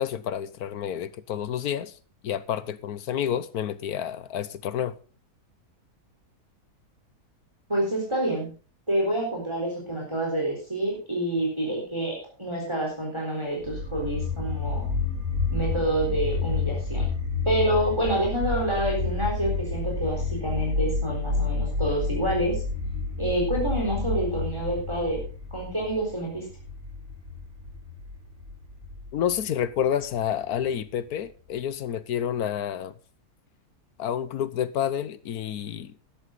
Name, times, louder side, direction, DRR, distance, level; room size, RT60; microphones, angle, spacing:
voice 1, 0.0-1.9 2.2-4.9 29.1-32.9 34.0-36.0, left 9 dB, 75° left, 1.3 m, -29 dB
voice 2, 7.7-8.5 8.9-14.9 15.5-17.1 17.4-22.6 23.2-25.2 25.5-26.5, right 1 dB, 15° right, 4.0 m, -27 dB
sound 1, 13.6-30.6, left 4 dB, 60° right, 4.8 m, -30 dB
12.5 x 11.5 x 3.9 m
omnidirectional pair, 1.7 m